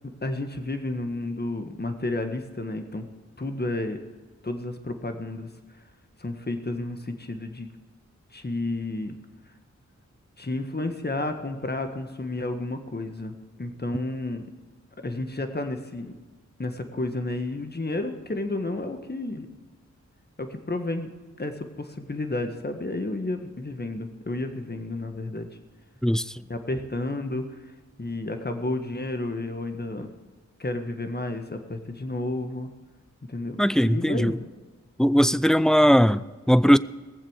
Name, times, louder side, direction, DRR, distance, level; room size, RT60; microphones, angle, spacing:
voice 1, 0.2-3.0 3.4-4.0 4.4-5.5 6.2-7.7 8.3-9.1 10.4-14.4 15.0-16.1 16.6-19.5 20.4-21.1 21.4-25.5 26.5-27.4 28.0-30.1 30.6-32.7 33.3-33.6 33.8-34.4, left 2 dB, 35° left, 1.6 m, -31 dB
voice 2, 26.0-26.3 33.6-34.4 35.0-36.8, equal, ahead, 0.4 m, -19 dB
19.0 x 7.5 x 6.5 m
cardioid pair, 40°, 29 cm